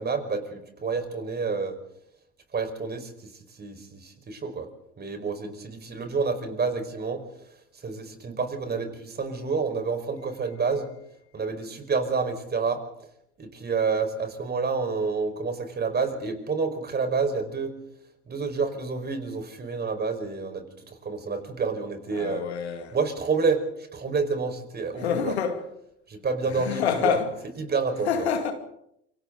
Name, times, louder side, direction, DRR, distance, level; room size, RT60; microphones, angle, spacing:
voice 1, 0.0-1.8 2.5-3.1 3.6-4.7 5.0-7.2 7.7-10.9 11.3-12.8 13.4-17.7 18.3-22.4 22.9-25.4 26.1-27.2 27.6-28.3, right 4 dB, 30° right, 5.1 m, -29 dB
voice 2, 22.1-23.0 25.0-25.6 26.5-27.3 28.1-28.5, left 7 dB, 85° left, 2.4 m, -27 dB
27.5 x 25.0 x 4.0 m
hypercardioid pair, 70°, 32 cm